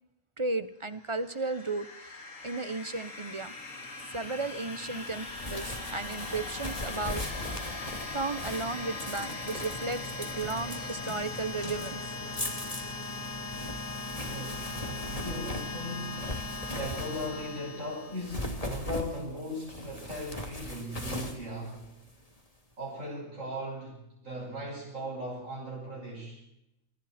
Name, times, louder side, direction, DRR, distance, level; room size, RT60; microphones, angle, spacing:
voice 1, 0.4-2.2 2.4-3.5 4.1-7.2 8.1-12.0 16.2-16.4, right 3 dB, 25° right, 12 dB, 1.1 m, -34 dB
sound 1, 1.0-18.6, left 3 dB, 75° left, 2.9 m, -39 dB
sound 2, 4.9-17.6 18.1-22.4, left 1 dB, 25° left, 3.0 m, -40 dB
voice 2, 14.1-16.3 16.7-21.9 22.8-26.4, equal, 75° right, -4 dB, 6.4 m, -38 dB
27.5 x 23.0 x 4.5 m, 0.83 s
omnidirectional pair, 1.4 m